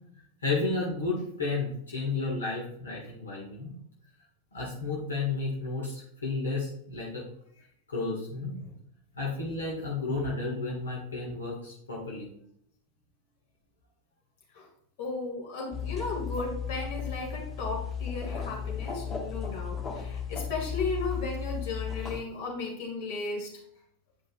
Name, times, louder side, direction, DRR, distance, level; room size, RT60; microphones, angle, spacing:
voice 1, 0.4-3.8 4.5-7.2 7.5-8.6 9.2-12.3, left 3 dB, 70° left, -3 dB, 1.7 m, -32 dB
voice 2, 15.0-23.5, left 3 dB, 50° left, -1 dB, 2.1 m, -35 dB
sound 1, 15.7-22.2, left 7 dB, 20° left, 1.0 m, -35 dB
9.1 x 5.3 x 2.4 m, 0.71 s
figure-of-eight pair, 90°, 0 cm